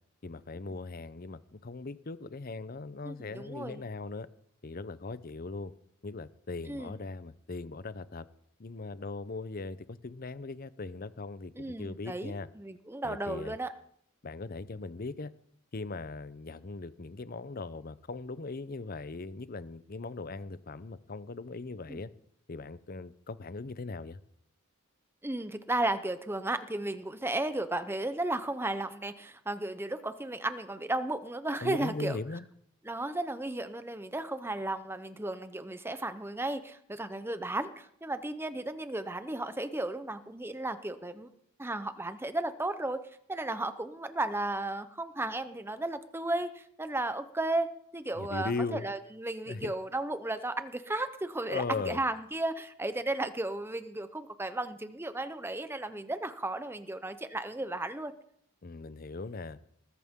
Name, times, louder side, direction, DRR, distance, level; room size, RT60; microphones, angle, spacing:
voice 1, 0.2-4.3 4.6-5.7 6.0-8.2 8.6-12.5 13.0-13.5 14.2-15.3 15.7-22.1 22.5-24.2 31.6-32.4 48.2-48.9 49.5-49.7 51.5-52.0 58.6-59.6, left 3 dB, 40° left, 0.6 m, -39 dB
voice 2, 3.0-3.8 6.7-6.9 11.6-13.7 21.9-22.0 25.2-32.2 32.8-41.3 41.6-43.0 43.3-58.1, right 2 dB, 10° right, 0.7 m, -34 dB
20.0 x 14.0 x 3.7 m
head